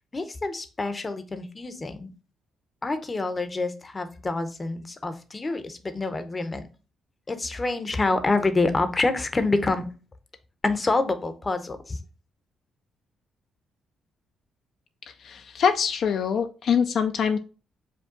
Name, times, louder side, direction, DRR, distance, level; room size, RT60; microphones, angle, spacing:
voice 1, 0.1-2.1 2.8-6.7 7.3-9.9 10.6-12.0, left 3 dB, 25° left, 9 dB, 0.6 m, -27 dB
voice 2, 15.2-17.4, left 7 dB, 65° left, 7 dB, 0.4 m, -24 dB
5.0 x 2.2 x 3.7 m, 0.34 s
cardioid pair, 90°, 0 cm